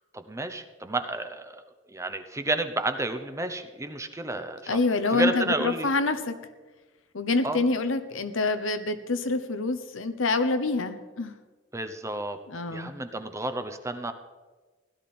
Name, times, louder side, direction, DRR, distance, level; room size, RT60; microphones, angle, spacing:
voice 1, 0.1-1.6 1.9-4.8 5.1-5.9 7.4-7.6 11.7-12.4 12.7-14.1, right 2 dB, 15° right, 8 dB, 0.8 m, -31 dB
voice 2, 4.7-6.4 7.1-11.3 12.5-12.9, left 3 dB, 85° left, 9 dB, 1.1 m, -26 dB
16.5 x 12.0 x 4.4 m, 1.3 s
head